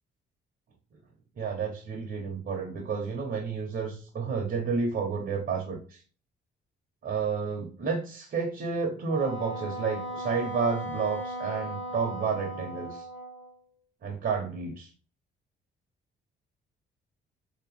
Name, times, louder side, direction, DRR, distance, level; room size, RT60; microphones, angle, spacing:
voice 1, 1.4-6.0 7.0-13.1 14.0-14.9, right 5 dB, 55° right, 0 dB, 1.0 m, -31 dB
Wind instrument woodwind instrument, 9.1-13.6, right 1 dB, 85° left, 0.9 m, -37 dB
3.2 x 3.0 x 3.2 m, 0.40 s
cardioid pair, 90°, 20 cm